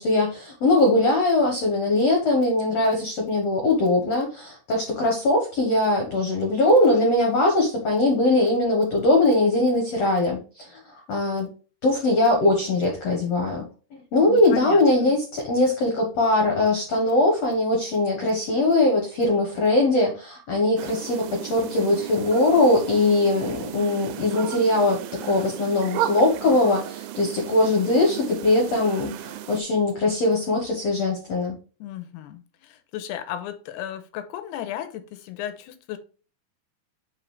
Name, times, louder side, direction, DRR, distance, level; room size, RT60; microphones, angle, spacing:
voice 1, 0.0-10.8 11.1-11.5 11.8-13.6 14.1-31.5, left 2 dB, 65° left, 1.6 m, -21 dB
voice 2, 14.3-15.2 31.8-36.0, left 11 dB, 90° left, 2.8 m, -35 dB
sound 1, 20.8-29.6, right 12 dB, 80° right, 2.5 m, -34 dB
7.6 x 4.0 x 3.3 m
omnidirectional pair, 4.7 m